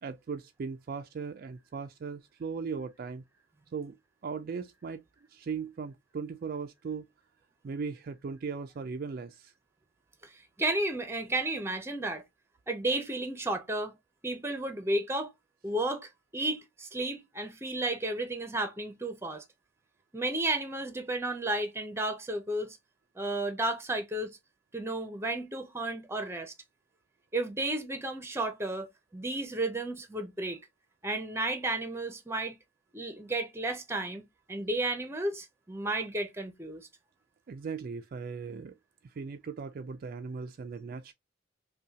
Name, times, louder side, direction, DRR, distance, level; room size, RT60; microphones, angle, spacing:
voice 1, 0.0-3.2 3.7-4.0 4.2-5.0 5.3-7.1 7.6-9.5 37.5-38.7 39.0-41.1, right 5 dB, 45° right, 0.3 m, -38 dB
voice 2, 10.2-12.2 12.7-13.9 14.2-15.3 15.6-19.4 20.1-22.8 23.2-24.4 24.7-26.5 27.3-28.9 29.1-30.6 31.0-32.6 32.9-36.9, right 2 dB, 15° right, 0.6 m, -33 dB
5.4 x 2.2 x 2.7 m
head